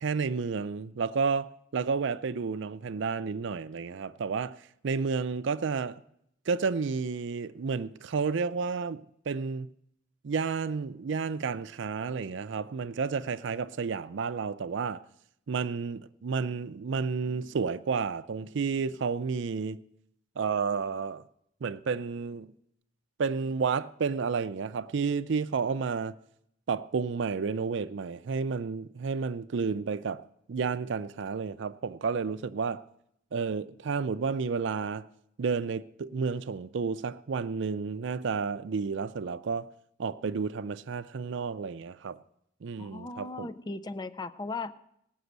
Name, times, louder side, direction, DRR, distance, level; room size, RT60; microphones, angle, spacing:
voice 1, 0.0-4.6 4.8-6.0 6.5-9.7 10.2-15.0 15.5-19.8 20.4-21.2 21.6-22.5 23.2-26.1 26.7-30.2 30.5-32.8 33.3-35.1 35.4-39.7 40.0-42.2 42.6-43.5, right 5 dB, 65° right, 0.4 m, -31 dB
voice 2, 42.8-44.7, left 3 dB, 20° left, 0.4 m, -37 dB
18.0 x 6.1 x 8.0 m
head